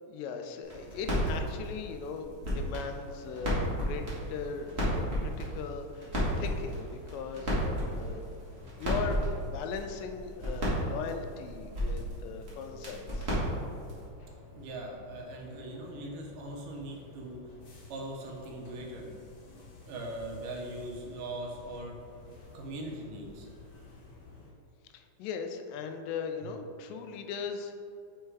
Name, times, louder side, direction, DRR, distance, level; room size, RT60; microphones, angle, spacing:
voice 1, 0.0-4.0 4.3-8.3 8.6-9.3 9.5-13.4 24.9-27.8, left 6 dB, 90° left, 6 dB, 2.2 m, -39 dB
sound 1, 0.6-14.1, equal, 55° right, 0.7 m, -34 dB
sound 2, 6.0-24.5, left 3 dB, 60° left, 2.0 m, -52 dB
voice 2, 14.5-17.4 17.9-19.1 19.8-22.0 22.5-23.5, right 1 dB, 80° right, -1 dB, 2.4 m, -40 dB
6.5 x 3.3 x 4.6 m, 2.5 s
omnidirectional pair, 3.8 m